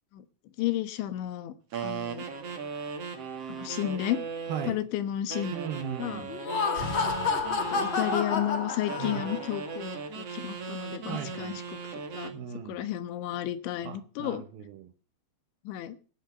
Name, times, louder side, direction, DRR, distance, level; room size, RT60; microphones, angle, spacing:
voice 1, 0.6-1.5 1.8-2.3 3.5-4.2 4.7-5.6 6.0-6.3 7.7-11.6 12.1-12.3 12.7-14.4 15.7-16.0, left 12 dB, 85° left, 3.5 m, -32 dB
sound 1, 1.7-4.8 5.3-8.3 8.9-12.4, right 5 dB, 45° right, 2.4 m, -37 dB
voice 2, 4.5-4.8 5.5-6.4 9.0-9.3 11.1-11.6 12.3-12.9 13.8-14.9, right 8 dB, 70° right, 2.5 m, -38 dB
Laughter, 6.3-9.6, left 5 dB, 40° left, 1.8 m, -29 dB
14.5 x 10.0 x 6.6 m
omnidirectional pair, 5.2 m